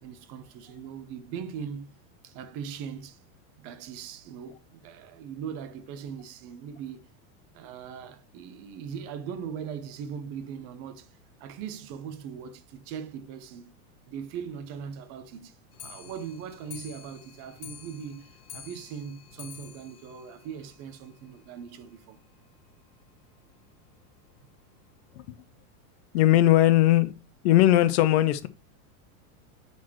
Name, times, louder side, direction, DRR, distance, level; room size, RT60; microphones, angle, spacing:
voice 1, 0.0-1.9 2.2-3.2 3.6-7.1 7.5-13.7 14.1-15.6 15.8-22.2, right 7 dB, 30° right, 0.7 m, -40 dB
Clock, 15.7-21.2 21.6-21.7 21.9-22.0 22.3-22.4 22.7-22.8 23.5-23.6 24.3-24.4 25.1-25.2, left 8 dB, 85° left, 1.3 m, -48 dB
voice 2, 26.1-27.1 27.4-28.5, left 14 dB, 50° left, 0.5 m, -19 dB
10.5 x 4.3 x 3.0 m
supercardioid pair, 160°, 44 cm